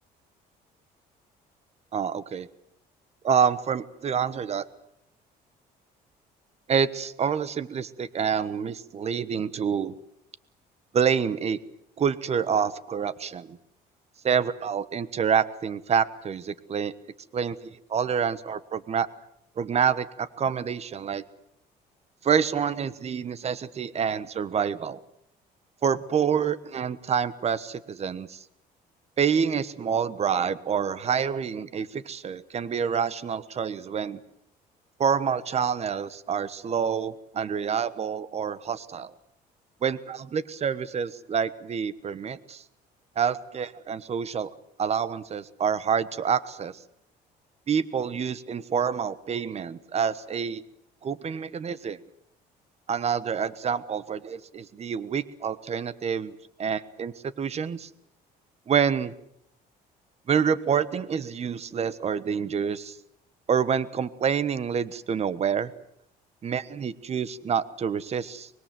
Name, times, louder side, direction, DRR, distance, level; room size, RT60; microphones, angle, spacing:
voice 1, 1.9-2.5 3.2-4.6 6.7-9.9 10.9-11.6 12.0-13.6 14.2-16.9 17.3-19.1 19.6-21.2 22.2-25.0 25.8-28.4 29.2-34.2 35.0-39.1 39.8-42.6 43.2-44.5 44.8-46.8 47.7-50.6 51.0-52.0 52.9-56.3 56.6-57.9 58.7-59.1 60.3-63.0 63.5-65.7 66.4-68.5, right 7 dB, 40° right, 16 dB, 1.2 m, -27 dB
24.5 x 22.0 x 7.7 m, 0.76 s
cardioid pair, 110°, 17 cm